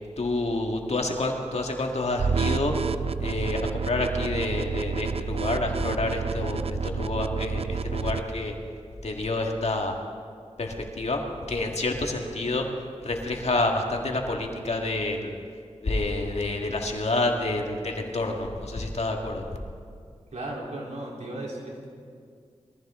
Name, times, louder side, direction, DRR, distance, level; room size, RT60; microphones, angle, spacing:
voice 1, 0.2-2.7 3.2-8.6 9.0-10.0 10.6-11.2 11.5-12.7 13.0-15.4 15.8-19.5, left 2 dB, 65° left, 2 dB, 2.0 m, -28 dB
sound 1, 2.2-8.2, right 5 dB, 55° right, 0.5 m, -29 dB
voice 2, 20.3-21.9, right 1 dB, 75° right, -3 dB, 3.6 m, -35 dB
22.0 x 14.5 x 3.7 m, 2.2 s
cardioid pair, 45°, 12 cm